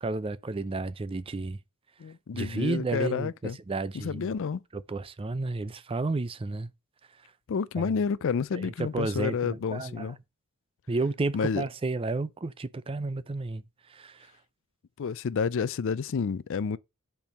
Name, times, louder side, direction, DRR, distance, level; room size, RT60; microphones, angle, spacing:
voice 1, 0.0-1.6 2.3-4.3 4.7-6.7 7.8-7.9 8.5-10.1 10.9-13.6 13.9-14.3, right 3 dB, 25° right, 0.4 m, -32 dB
voice 2, 2.0-3.6 3.9-4.6 7.5-10.2 11.3-11.6 15.0-16.8, left 6 dB, 60° left, 0.4 m, -30 dB
5.3 x 4.6 x 6.2 m
head